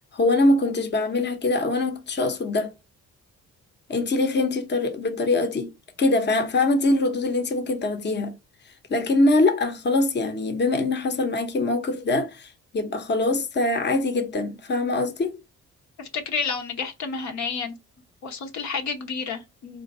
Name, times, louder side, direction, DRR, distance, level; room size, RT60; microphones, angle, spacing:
voice 1, 0.1-2.7 3.9-5.7 6.0-8.3 8.9-15.4, left 2 dB, 35° left, 0.9 m, -23 dB
voice 2, 16.0-17.8 18.2-19.8, left 5 dB, 65° left, 1.0 m, -30 dB
3.8 x 2.6 x 4.1 m
cardioid pair, 90°, 30 cm